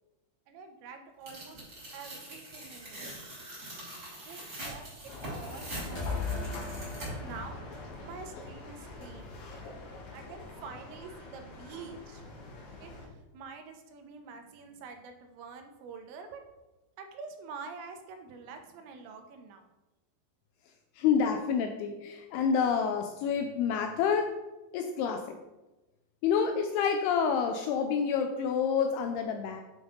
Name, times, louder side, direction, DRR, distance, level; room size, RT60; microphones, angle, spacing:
voice 1, 0.5-1.6 1.9-3.1 4.2-6.5 7.2-9.6 9.9-12.3 12.8-16.4 17.0-19.7, right 5 dB, 85° right, 6 dB, 3.1 m, -47 dB
Tearing, 1.3-7.4, right 1 dB, 25° right, 2.5 m, -43 dB
sound 1, 5.1-13.1, left 2 dB, 65° left, 2.8 m, -45 dB
sound 2, 6.0-8.9, left 4 dB, 50° left, 1.8 m, -38 dB
voice 2, 21.0-24.3 24.7-25.4 26.2-29.6, left 6 dB, 90° left, 4 dB, 2.2 m, -28 dB
9.0 x 5.3 x 3.8 m, 1.1 s
omnidirectional pair, 5.2 m